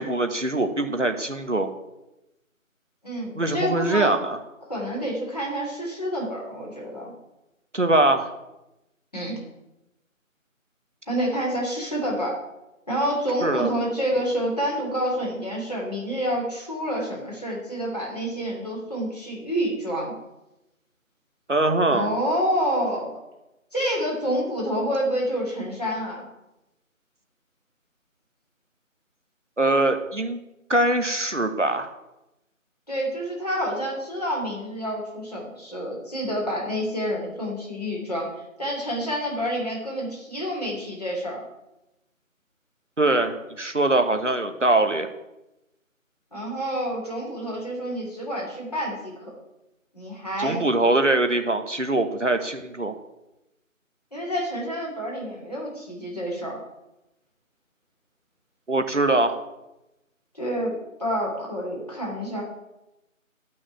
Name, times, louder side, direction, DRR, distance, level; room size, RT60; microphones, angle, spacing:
voice 1, 0.0-1.7 3.4-4.4 7.7-8.3 13.4-13.7 21.5-22.1 29.6-30.4 30.7-31.9 43.0-45.1 50.4-52.9 58.7-59.4, right 2 dB, 60° right, 7 dB, 1.3 m, -22 dB
voice 2, 3.0-4.2 4.7-7.1 9.1-9.4 11.1-12.4 12.9-20.1 21.9-23.2 23.7-26.2 32.9-38.3 38.6-41.4 46.3-49.3 49.9-50.6 54.1-56.6 60.3-60.7 61.0-62.4, equal, 30° left, -4 dB, 3.3 m, -28 dB
11.0 x 6.2 x 9.1 m, 0.95 s
figure-of-eight pair, 175°, 41 cm